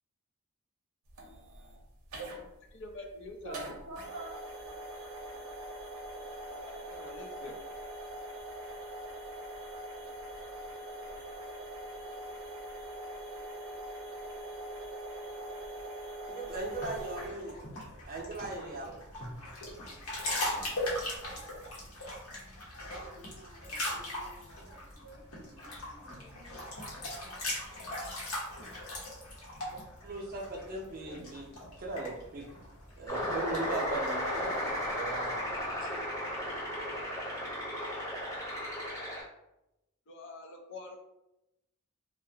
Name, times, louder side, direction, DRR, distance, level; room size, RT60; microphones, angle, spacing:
sound 1, 1.1-17.3, right 1 dB, 85° right, 0.6 m, -43 dB
voice 1, 2.7-3.8 6.6-7.5 40.1-41.0, left 2 dB, 55° left, 2 dB, 0.4 m, -45 dB
voice 2, 3.4-4.4 16.7-17.2 17.4-17.5 20.1-21.4 22.8-27.5, right 1 dB, 60° right, -3 dB, 0.8 m, -50 dB
voice 3, 16.3-17.5 18.1-19.0 30.0-32.5 33.0-35.4 35.8-35.9, right 2 dB, 40° right, -1 dB, 0.5 m, -38 dB
sound 2, 16.5-34.7, left 1 dB, 75° left, 0.8 m, -40 dB
sound 3, 33.1-39.2, left 1 dB, 15° left, 0.7 m, -35 dB
2.3 x 2.1 x 2.7 m, 0.90 s
head